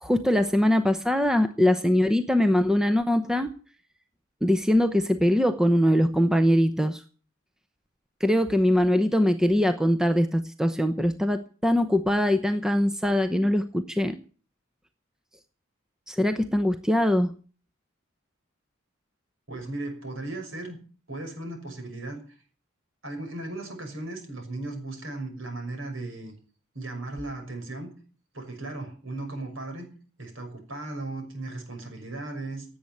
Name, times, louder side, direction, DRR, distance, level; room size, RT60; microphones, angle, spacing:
voice 1, 0.0-3.5 4.4-7.0 8.2-14.2 16.1-17.4, left 1 dB, 5° right, 8 dB, 0.8 m, -22 dB
voice 2, 19.5-20.8 21.1-22.2 23.0-26.3 26.7-27.9 28.3-29.9 30.2-32.7, right 2 dB, 70° right, 4 dB, 6.1 m, -36 dB
17.0 x 8.5 x 9.1 m, 0.41 s
head